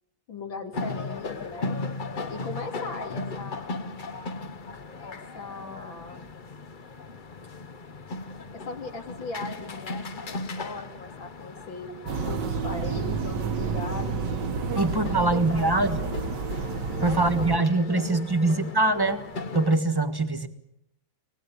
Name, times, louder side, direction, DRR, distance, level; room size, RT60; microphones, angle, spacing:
voice 1, 0.3-1.8 2.3-3.8 5.0-6.2 8.5-11.9 12.2-14.2 14.7-16.2 17.0-18.7, left 3 dB, 85° left, 4 dB, 3.7 m, -39 dB
sound 1, 0.7-19.8, left 3 dB, 40° left, 0.7 m, -37 dB
sound 2, 12.1-17.6, right 5 dB, 65° right, 1.9 m, -30 dB
voice 2, 14.8-16.1 17.0-19.2 19.5-20.5, right 2 dB, 15° right, 9 dB, 1.4 m, -23 dB
25.5 x 19.0 x 8.4 m, 0.81 s
omnidirectional pair, 2.1 m